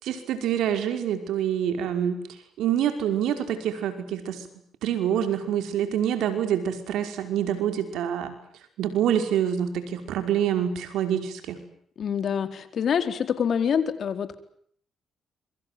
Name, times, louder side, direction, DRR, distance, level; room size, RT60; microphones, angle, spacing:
voice 1, 0.0-2.2 2.6-4.5 4.8-8.3 8.8-11.6, right 9 dB, 80° right, 8 dB, 5.4 m, -26 dB
voice 2, 12.0-14.3, left 7 dB, 60° left, 10 dB, 4.2 m, -26 dB
27.5 x 24.5 x 7.8 m, 0.64 s
cardioid pair, 90°, 0 cm